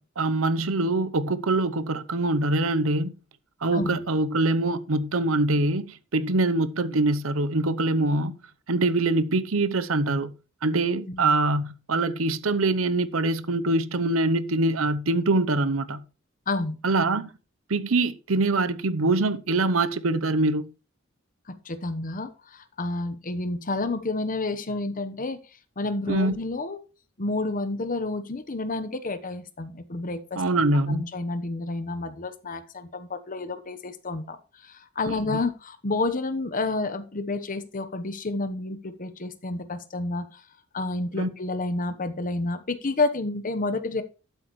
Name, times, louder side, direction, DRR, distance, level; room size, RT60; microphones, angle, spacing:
voice 1, 0.0-3.1 3.6-8.3 8.7-10.3 10.6-16.0 16.8-17.3 17.7-20.7 26.1-26.3 30.4-31.0 35.3-35.4 41.2-41.3, right 2 dB, 75° right, 0.8 m, -24 dB
voice 2, 16.5-16.8 21.5-25.4 25.8-26.8 27.2-30.4 30.9-40.4 40.7-44.0, left 2 dB, 40° left, 1.0 m, -30 dB
12.5 x 8.0 x 3.2 m
head